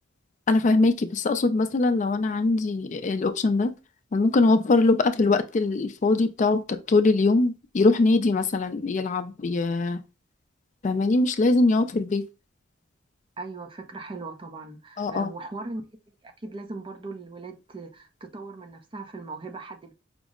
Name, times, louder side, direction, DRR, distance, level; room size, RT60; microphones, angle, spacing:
voice 1, 0.5-3.7 4.1-10.0 10.8-12.2 15.0-15.3, left 3 dB, 40° left, 0.4 m, -22 dB
voice 2, 13.4-19.9, right 3 dB, 25° right, 0.5 m, -39 dB
5.1 x 2.0 x 3.6 m
head